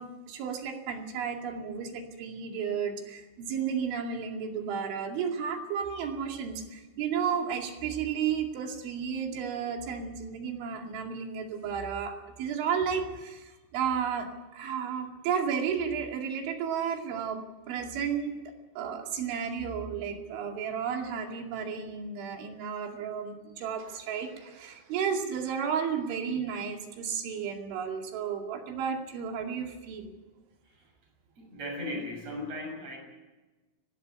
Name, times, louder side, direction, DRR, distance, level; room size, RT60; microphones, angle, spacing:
voice 1, 0.0-18.4 18.8-30.1, right 7 dB, 75° right, 3 dB, 4.8 m, -33 dB
voice 2, 31.4-33.0, left 1 dB, 30° right, 1 dB, 7.8 m, -37 dB
19.0 x 15.5 x 9.9 m, 1.2 s
omnidirectional pair, 5.5 m